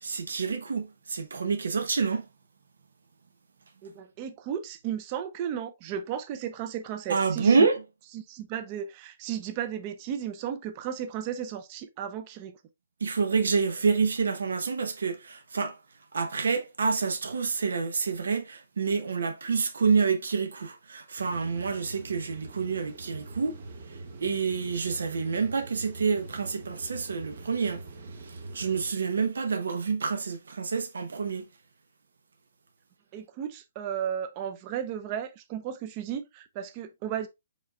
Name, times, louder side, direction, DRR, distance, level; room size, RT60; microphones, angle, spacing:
voice 1, 0.0-2.2 7.1-7.8 13.0-15.8 16.1-27.8 28.2-31.5, right 5 dB, 90° right, 0.8 m, -28 dB
voice 2, 3.8-7.7 8.1-12.6 33.1-37.3, right 9 dB, 20° right, 0.5 m, -34 dB
sound 1, 21.2-28.9, right 3 dB, 45° right, 0.8 m, -44 dB
5.1 x 4.1 x 2.3 m
hypercardioid pair, 175°, 0 cm